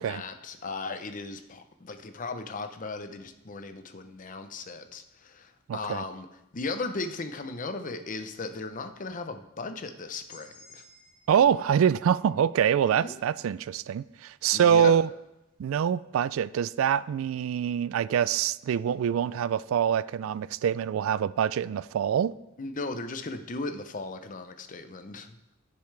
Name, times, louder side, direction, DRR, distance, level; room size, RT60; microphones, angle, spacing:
voice 1, 0.0-6.3 6.5-10.8 12.9-13.1 14.5-15.0 22.6-25.4, left 3 dB, 40° left, 0.7 m, -37 dB
voice 2, 5.7-6.0 11.3-15.1 15.6-22.4, right 8 dB, 80° right, 0.3 m, -25 dB
sound 1, 10.3-14.1, left 3 dB, 20° left, 2.5 m, -57 dB
15.0 x 6.9 x 3.3 m
head